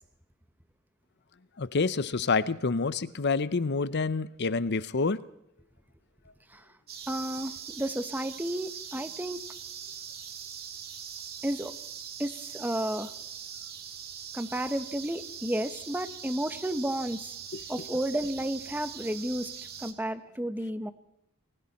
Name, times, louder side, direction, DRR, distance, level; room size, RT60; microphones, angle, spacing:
voice 1, 1.6-5.3 17.5-17.6, left 4 dB, 55° left, 0.8 m, -28 dB
sound 1, 6.9-19.9, right 8 dB, 45° right, 2.3 m, -42 dB
voice 2, 7.1-9.4 11.4-11.7 12.2-13.1 14.3-17.3 17.7-19.5 19.8-20.9, right 1 dB, 10° right, 1.2 m, -32 dB
29.5 x 20.5 x 4.3 m
head